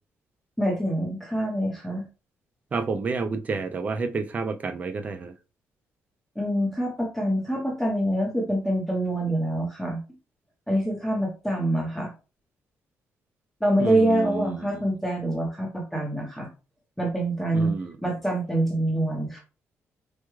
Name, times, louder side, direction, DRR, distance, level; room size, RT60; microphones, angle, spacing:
voice 1, 0.6-2.1 6.4-10.0 10.7-12.1 13.6-16.5 17.0-17.7 18.0-19.4, right 1 dB, ahead, 0.8 m, -25 dB
voice 2, 2.7-5.3 13.8-14.8 17.5-17.9, right 4 dB, 30° right, 0.4 m, -29 dB
4.6 x 2.2 x 3.0 m
cardioid pair, 135°, 5 cm